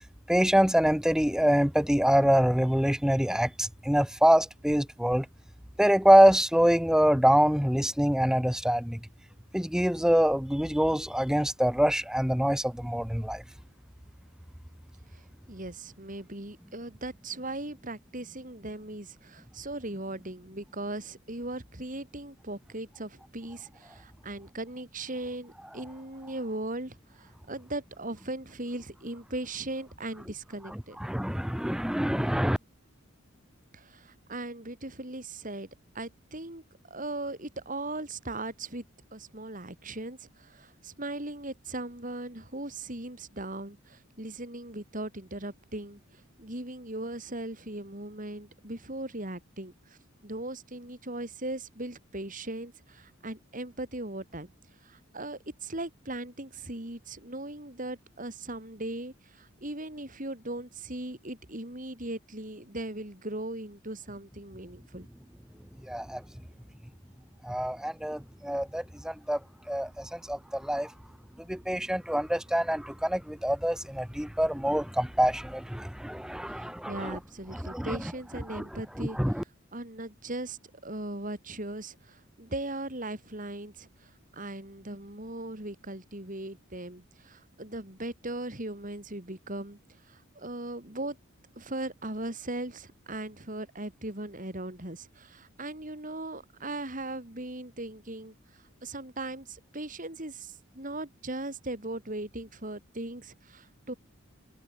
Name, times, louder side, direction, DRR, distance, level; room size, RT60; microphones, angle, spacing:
voice 1, 0.3-5.3 5.8-9.0 9.5-13.4 31.0-32.6 65.8-66.2 67.4-69.4 69.7-70.9 71.4-77.2 77.5-78.0 78.5-78.6 79.0-79.4, equal, 5° right, 0.8 m, -25 dB
voice 2, 15.1-31.0 33.7-35.7 35.9-38.8 39.1-54.5 54.8-65.1 76.5-79.2 79.7-89.8 90.1-91.2 91.6-103.9, right 2 dB, 40° right, 4.1 m, -38 dB
head